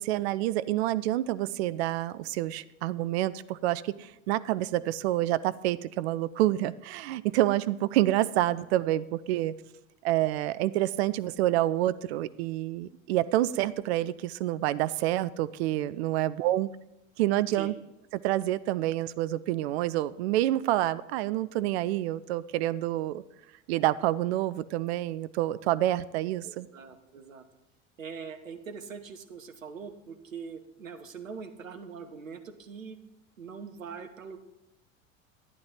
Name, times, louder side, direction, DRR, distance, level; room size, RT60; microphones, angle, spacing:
voice 1, 0.0-9.5 10.0-16.7 17.2-17.7 18.1-23.2 23.7-26.7, right 14 dB, 55° right, 16 dB, 0.5 m, -28 dB
voice 2, 26.4-27.4 28.0-33.0 33.4-34.4, right 5 dB, 80° right, 9 dB, 0.9 m, -42 dB
12.0 x 9.4 x 3.8 m, 0.88 s
figure-of-eight pair, 75°, 40 cm